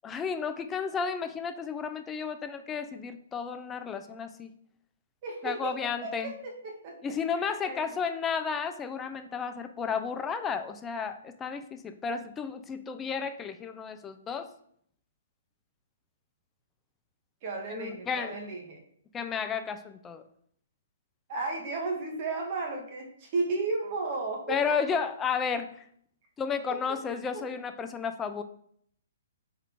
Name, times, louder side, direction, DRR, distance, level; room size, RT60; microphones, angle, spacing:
voice 1, 0.0-4.5 5.4-6.3 7.0-14.5 17.7-18.4 19.1-20.2 24.5-25.7 26.4-28.4, left 6 dB, 15° left, 9 dB, 0.3 m, -32 dB
voice 2, 5.2-8.0 17.4-18.8 21.3-24.8 26.5-27.0 27.3-27.5, right 3 dB, 40° right, 1 dB, 0.7 m, -34 dB
3.5 x 2.4 x 4.4 m, 0.65 s
hypercardioid pair, 140°, 0 cm